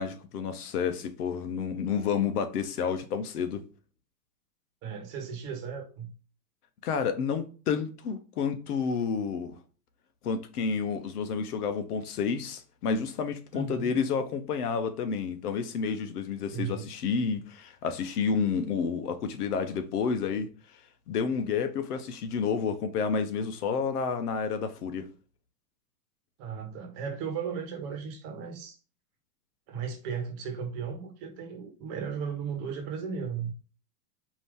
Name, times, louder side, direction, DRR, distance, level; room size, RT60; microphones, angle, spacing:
voice 1, 0.0-3.6 6.8-9.6 10.2-20.5 21.1-25.1, left 6 dB, 70° left, 1.0 m, -30 dB
voice 2, 4.8-6.1 13.5-14.0 16.5-16.9 26.4-28.8 29.7-33.5, right 6 dB, 35° right, 1.1 m, -36 dB
5.0 x 2.7 x 3.5 m
supercardioid pair, 150°, 47 cm